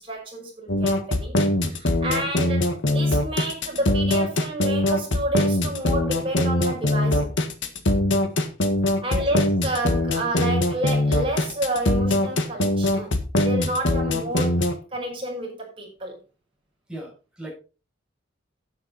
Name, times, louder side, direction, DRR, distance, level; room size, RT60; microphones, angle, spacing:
voice 1, 0.0-1.4 1.6-7.3 9.0-14.7 14.9-16.2, right 1 dB, 30° right, 5.8 m, -30 dB
sound 1, 0.7-14.7, left 1 dB, 80° left, 1.7 m, -22 dB
voice 2, 16.9-17.5, right 1 dB, 5° right, 6.4 m, -37 dB
10.0 x 9.5 x 4.2 m
head